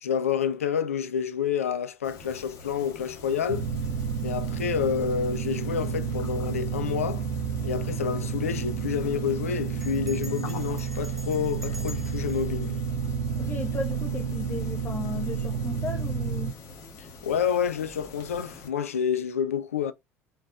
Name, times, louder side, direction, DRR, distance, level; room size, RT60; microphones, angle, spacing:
voice 1, 0.0-3.7 4.2-7.3 7.6-12.8 17.0-19.9, left 7 dB, 80° left, 0.4 m, -29 dB
sound 1, 2.0-18.7, left 4 dB, 50° left, 1.4 m, -46 dB
sound 2, 3.5-16.5, right 6 dB, 60° right, 0.6 m, -30 dB
Bell, 9.8-13.9, equal, ahead, 2.0 m, -48 dB
voice 2, 13.4-16.5, left 3 dB, 25° left, 1.0 m, -35 dB
4.2 x 4.0 x 2.3 m
figure-of-eight pair, 60°, 8 cm